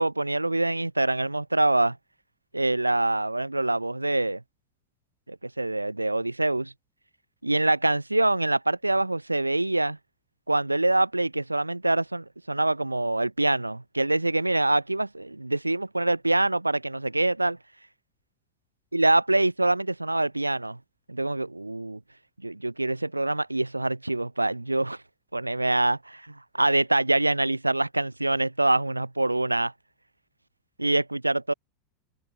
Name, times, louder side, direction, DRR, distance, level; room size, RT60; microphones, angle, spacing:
voice 1, 0.0-2.0 2.5-4.4 5.3-6.7 7.4-10.0 10.5-17.6 18.9-20.8 21.1-22.0 22.4-25.0 25.3-29.7 30.8-31.5, right 2 dB, 90° right, 7.0 m, -25 dB
figure-of-eight pair, 85°, 0 cm